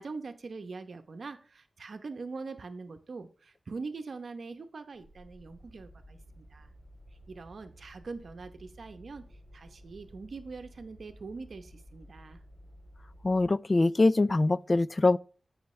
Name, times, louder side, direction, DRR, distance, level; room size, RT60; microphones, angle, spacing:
voice 1, 0.0-6.7 7.3-9.2 9.5-12.4, right 4 dB, 70° right, 0.8 m, -43 dB
sound 1, 4.9-13.5, equal, 85° left, 4.0 m, -54 dB
voice 2, 13.2-15.2, left 2 dB, 40° left, 0.3 m, -23 dB
15.5 x 5.8 x 3.2 m
cardioid pair, 65°, 0 cm